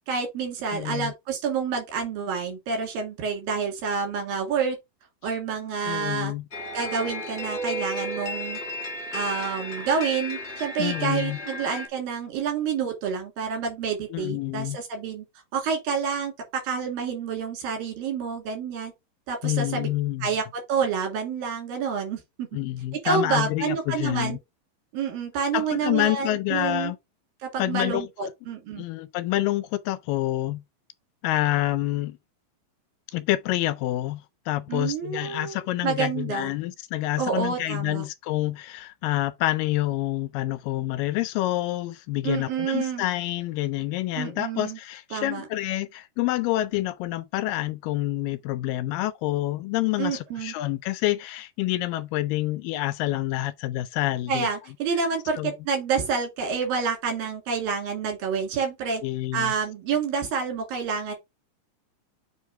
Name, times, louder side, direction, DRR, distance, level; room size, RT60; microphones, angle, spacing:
voice 1, 0.1-4.8 5.2-6.3 6.7-8.6 9.1-15.3 15.5-16.3 16.6-18.9 19.3-19.9 20.2-22.5 23.0-24.4 24.9-26.9 27.4-28.8 34.7-36.5 37.2-38.1 42.2-43.0 44.1-44.8 45.1-45.5 50.0-50.5 54.3-59.0 59.3-61.2, right 6 dB, 75° right, 3.9 m, -28 dB
voice 2, 0.7-1.1 5.8-6.4 10.8-11.4 14.1-14.8 19.4-20.3 22.5-24.4 25.5-27.0 27.6-28.3 28.8-30.6 31.2-32.2 33.1-54.5 55.3-55.5 59.0-59.5, left 16 dB, 80° left, 2.1 m, -27 dB
sound 1, 6.5-11.9, left 1 dB, 30° left, 1.3 m, -33 dB
7.3 x 3.2 x 4.6 m
omnidirectional pair, 4.1 m